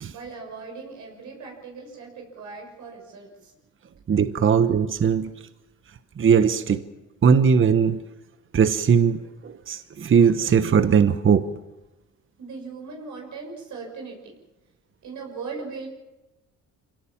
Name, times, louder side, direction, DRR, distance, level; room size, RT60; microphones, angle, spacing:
voice 1, 0.1-3.5 4.5-4.8 12.4-14.4 15.0-15.9, right 4 dB, 75° right, 0 dB, 6.4 m, -39 dB
voice 2, 4.1-5.3 6.2-6.8 7.2-8.0 8.5-11.5, right 6 dB, 40° right, 11 dB, 1.2 m, -19 dB
25.5 x 18.0 x 7.4 m, 1.0 s
cardioid pair, 90°, 30 cm